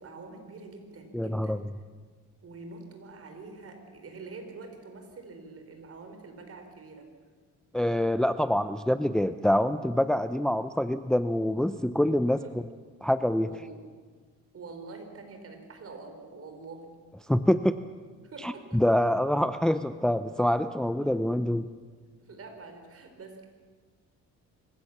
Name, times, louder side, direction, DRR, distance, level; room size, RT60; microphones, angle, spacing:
voice 1, 0.0-1.6 2.4-7.1 12.4-12.5 13.4-13.8 14.5-16.9 18.2-18.8 22.2-23.5, right 3 dB, 50° right, 5 dB, 4.8 m, -45 dB
voice 2, 1.1-1.6 7.7-12.4 13.0-13.5 17.3-17.7 18.4-21.7, left 1 dB, ahead, 12 dB, 0.6 m, -25 dB
26.0 x 16.0 x 7.3 m, 1.5 s
cardioid pair, 90°, 30 cm